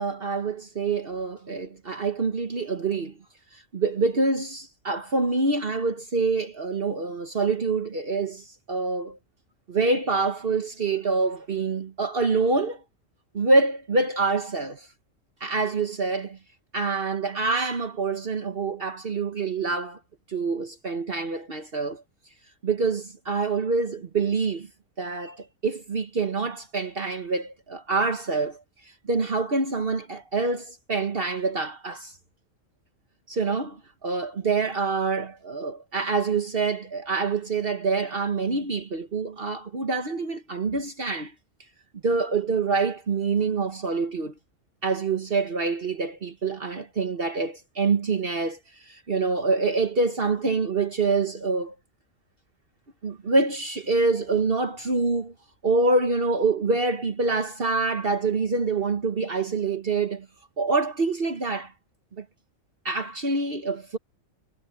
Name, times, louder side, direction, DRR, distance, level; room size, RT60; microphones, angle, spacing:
voice 1, 0.0-3.1 3.7-9.2 9.7-12.8 13.3-14.9 15.4-16.4 16.7-20.0 20.3-22.0 22.6-24.7 25.0-28.6 29.1-32.1 33.3-41.3 42.0-44.3 44.8-48.6 48.9-51.7 53.0-55.3 55.6-60.3 60.6-61.7 62.2-62.3 62.8-64.0, right 3 dB, 45° right, 1.3 m, -26 dB
omnidirectional pair, 1.4 m